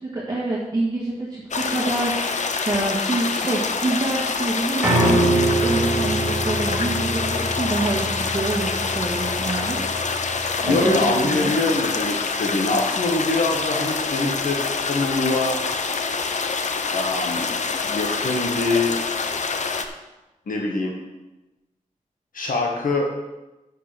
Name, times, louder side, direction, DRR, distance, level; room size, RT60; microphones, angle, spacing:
voice 1, 0.1-2.2 2.6-9.8 10.6-11.5, right 2 dB, 30° right, -6 dB, 1.6 m, -26 dB
sound 1, 1.5-19.9, left 4 dB, 60° left, 0.7 m, -26 dB
Piano, 4.8-11.0, right 1 dB, 15° right, 3.3 m, -25 dB
voice 2, 10.7-15.6 16.9-17.5 17.8-18.9 20.5-20.9 22.3-23.2, left 2 dB, 90° left, 0 dB, 1.3 m, -24 dB
6.7 x 6.6 x 7.5 m, 1.0 s
wide cardioid pair, 125°, 14 cm